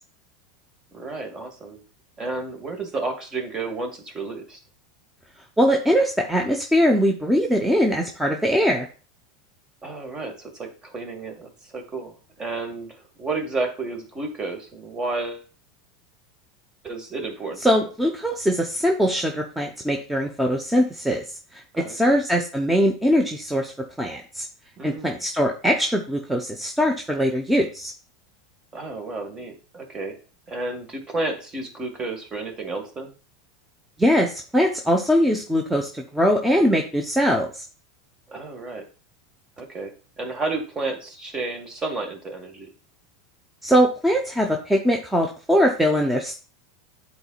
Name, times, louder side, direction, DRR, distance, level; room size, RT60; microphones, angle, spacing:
voice 1, 0.9-1.8 2.2-4.6 9.8-15.5 16.8-17.9 21.7-22.2 24.8-25.2 28.7-30.2 30.5-33.1 38.3-38.9 39.6-42.7, right 3 dB, 30° right, 5 dB, 1.9 m, -32 dB
voice 2, 5.6-8.9 17.6-21.2 21.5-21.6 21.9-23.7 24.0-24.5 24.8-27.9 34.0-37.6 43.6-46.4, equal, 5° right, 2 dB, 1.0 m, -21 dB
11.0 x 4.3 x 2.4 m, 0.36 s
hypercardioid pair, 90°, 2 cm